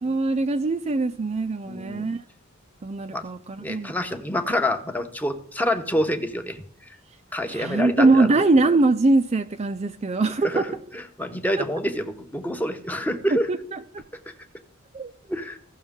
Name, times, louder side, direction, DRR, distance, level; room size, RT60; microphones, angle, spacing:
voice 1, 0.0-2.2 2.8-3.9 7.5-10.6 13.5-14.0 14.9-15.1, right 3 dB, 30° right, 0.5 m, -22 dB
voice 2, 1.6-2.1 3.1-3.2 3.6-6.6 7.3-8.3 10.4-10.7 10.9-13.5 15.3-15.6, left 1 dB, 10° left, 0.9 m, -27 dB
16.0 x 6.3 x 3.6 m
head